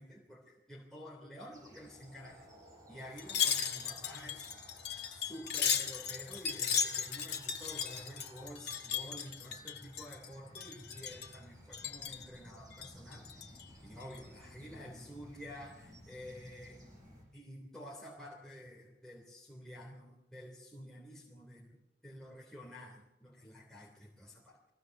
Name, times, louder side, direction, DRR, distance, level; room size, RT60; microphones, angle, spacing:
voice 1, 0.0-2.5 2.9-4.5 4.8-13.4 13.8-16.9 17.3-24.6, equal, 5° left, -5 dB, 3.2 m, -50 dB
sound 1, 1.5-17.2, equal, 20° right, 7.7 m, -57 dB
Wind chime, 3.2-10.3 10.5-11.4 11.7-12.3 12.7-13.6 14.0-14.2, left 7 dB, 70° left, 2.2 m, -36 dB
22.0 x 16.5 x 7.2 m, 0.95 s
head